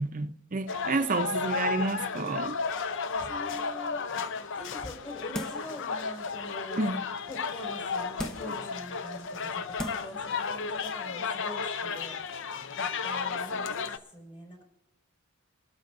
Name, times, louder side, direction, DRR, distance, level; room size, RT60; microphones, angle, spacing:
voice 1, 0.0-2.6 6.8-7.0, right 3 dB, 40° right, 0.6 m, -30 dB
sound 1, 0.7-14.0, left 5 dB, 60° left, 0.6 m, -33 dB
voice 2, 3.1-4.0 4.5-6.8 7.3-12.2 12.8-13.8 14.1-14.6, equal, 25° left, 4.9 m, -44 dB
sound 2, 5.3-5.8 6.3-6.4 8.2-8.6 9.3-9.4 9.8-10.2 10.6-10.7, left 1 dB, 5° left, 0.8 m, -37 dB
23.0 x 13.0 x 2.6 m
head